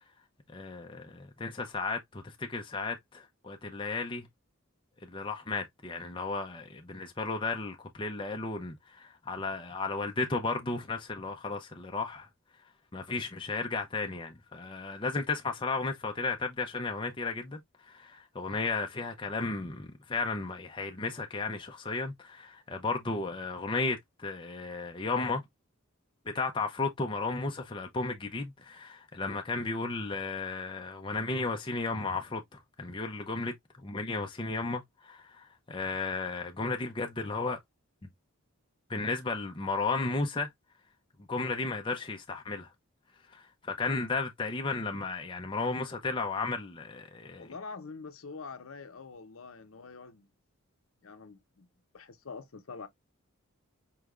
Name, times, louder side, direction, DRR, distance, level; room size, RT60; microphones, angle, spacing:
voice 1, 0.5-4.3 5.0-12.3 12.9-25.4 26.3-37.6 38.9-40.5 41.3-42.7 43.3-47.5, left 3 dB, 20° left, 0.6 m, -34 dB
voice 2, 47.4-50.3 51.0-51.7 51.9-52.9, left 4 dB, 70° left, 0.7 m, -45 dB
4.7 x 3.3 x 2.4 m
head